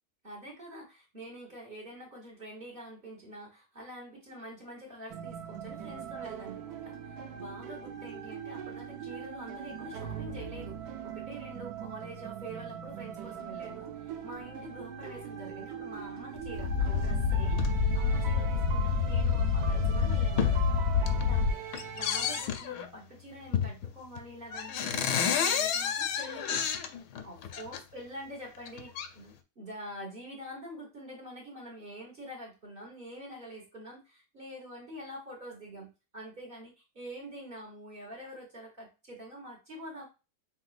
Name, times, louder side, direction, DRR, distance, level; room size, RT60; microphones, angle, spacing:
voice 1, 0.2-20.8 21.1-21.6 21.9-26.6 27.2-40.1, equal, 35° right, -2 dB, 1.4 m, -46 dB
sound 1, 5.1-22.4, right 6 dB, 70° right, 1.1 m, -41 dB
sound 2, 16.3-21.5, left 5 dB, 60° left, 1.0 m, -27 dB
sound 3, 17.5-17.7 18.6-18.8 19.4-19.5 19.9-20.6 20.9-21.4 21.7-22.9 23.5-23.9 24.2-24.3 24.5-27.8 28.5-29.1, left 8 dB, 80° left, 1.2 m, -31 dB
5.9 x 2.7 x 2.5 m, 0.29 s
omnidirectional pair, 1.8 m